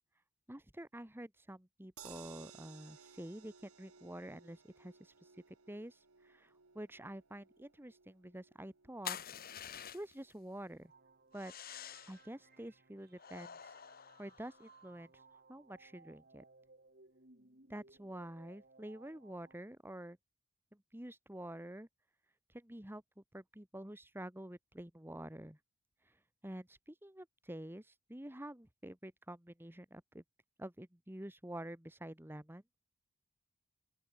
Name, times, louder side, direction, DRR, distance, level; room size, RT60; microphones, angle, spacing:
voice 1, 0.5-9.4 9.9-10.9 11.3-11.5 12.1-13.7 14.2-16.4 17.7-20.2 20.9-21.9 22.5-25.6 26.0-30.2 30.6-32.6, right 1 dB, 10° right, 1.6 m, -48 dB
sound 1, 2.0-14.2 14.6-14.7 15.0-15.1, right 7 dB, 75° right, 2.0 m, -61 dB
sound 2, 9.0-10.3 11.3-12.3 13.2-14.8, left 9 dB, 45° left, 1.7 m, -47 dB
sound 3, 10.8-19.5, right 3 dB, 40° right, 5.0 m, -63 dB
open air
head